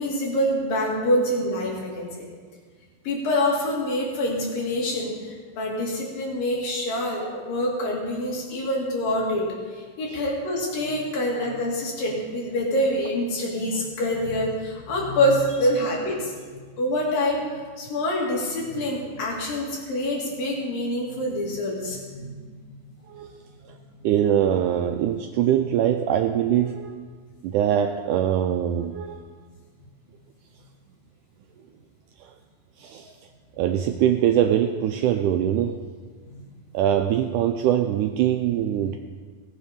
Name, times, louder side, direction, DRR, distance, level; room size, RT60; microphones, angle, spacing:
voice 1, 0.0-2.3 3.1-5.1 5.6-9.5 10.0-22.3 22.7-22.8 24.0-24.1 36.3-36.4, left 1 dB, 70° left, -2 dB, 4.0 m, -26 dB
voice 2, 24.0-27.0 27.4-29.2 32.8-33.1 33.6-35.8 36.7-39.0, right 10 dB, 90° right, 5 dB, 1.8 m, -22 dB
18.0 x 7.3 x 5.2 m, 1.5 s
omnidirectional pair, 4.2 m